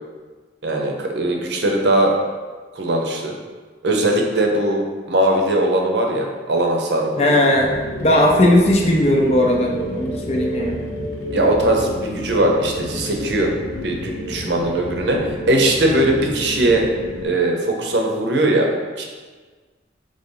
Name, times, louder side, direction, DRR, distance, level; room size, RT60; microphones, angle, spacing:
voice 1, 0.6-2.1 2.8-3.3 3.8-4.8 5.1-7.5 8.4-8.6 11.3-13.5 13.8-15.2 15.5-16.8 17.2-18.7 19.0-19.1, right 1 dB, 75° right, 1 dB, 0.7 m, -19 dB
voice 2, 7.2-7.7 8.0-10.8, left 1 dB, 35° left, 0 dB, 0.5 m, -17 dB
sound 1, 7.5-17.2, equal, 75° left, 0.9 m, -30 dB
3.9 x 3.3 x 3.8 m, 1.4 s
head